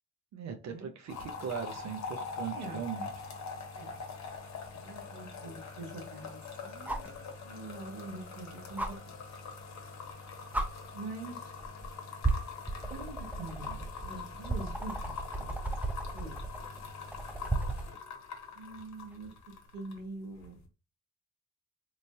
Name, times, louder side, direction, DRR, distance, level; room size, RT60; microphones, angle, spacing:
voice 1, 0.3-3.1, right 7 dB, 55° right, 5 dB, 0.6 m, -39 dB
sound 1, 1.1-20.0 20.3-20.7, left 5 dB, 50° left, 1.0 m, -43 dB
sound 2, 4.6-4.7 6.9-7.2 8.8-8.9 10.0-10.2 10.5-10.7 11.6-11.9 12.2-17.9 19.6-19.7, right 2 dB, 5° right, 0.5 m, -34 dB
voice 2, 4.7-9.0 10.9-11.5 12.9-15.5 15.8-16.4 18.5-19.3 19.7-20.6, right 3 dB, 75° right, 1 dB, 1.1 m, -45 dB
3.1 x 2.6 x 2.2 m, 0.30 s
hypercardioid pair, 45°, 34 cm